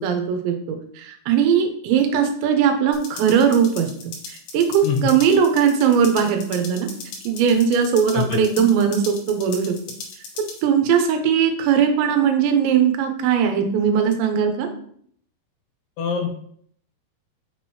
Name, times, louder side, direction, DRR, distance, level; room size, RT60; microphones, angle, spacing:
voice 1, 0.0-3.9 4.5-6.9 7.3-9.7 10.6-14.7, right 7 dB, 85° right, 5 dB, 2.9 m, -19 dB
sound 1, 2.9-10.6, left 4 dB, 70° left, 2.6 m, -38 dB
voice 2, 16.0-16.3, left 6 dB, 85° left, 1 dB, 3.2 m, -23 dB
6.2 x 6.2 x 3.0 m, 0.62 s
omnidirectional pair, 5.3 m